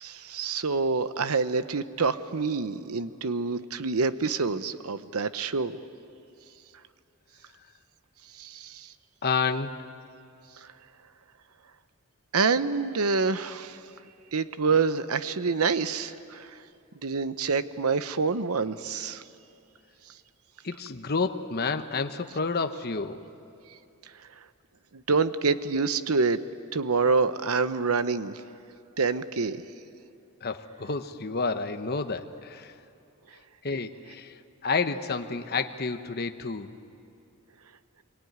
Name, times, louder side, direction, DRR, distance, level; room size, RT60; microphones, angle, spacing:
voice 1, 0.0-5.8 8.4-8.9 12.3-13.8 14.3-16.6 17.0-19.2 24.9-26.4 26.7-28.4 29.0-29.6, right 4 dB, 80° right, 12 dB, 0.9 m, -27 dB
voice 2, 9.2-9.8 20.6-23.2 30.4-32.7 33.6-36.7, left 4 dB, 45° left, 7 dB, 1.1 m, -30 dB
26.5 x 23.5 x 9.5 m, 2.7 s
head